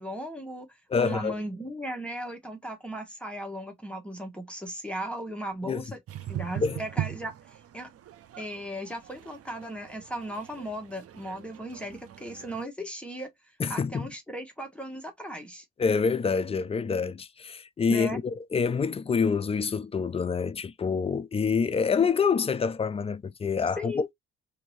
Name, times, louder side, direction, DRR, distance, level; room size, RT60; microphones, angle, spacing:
voice 1, 0.0-6.0 6.3-7.9 8.4-13.3 13.7-15.6 17.9-18.2 18.5-18.6 23.8-24.1, equal, 5° left, 1.0 m, -37 dB
voice 2, 0.9-1.4 5.6-5.8 6.6-6.8 13.6-14.1 15.8-24.1, left 5 dB, 20° left, 0.3 m, -27 dB
sound 1, 6.1-12.6, right 12 dB, 50° right, 0.5 m, -40 dB
2.6 x 2.6 x 3.0 m
cardioid pair, 90°, 30 cm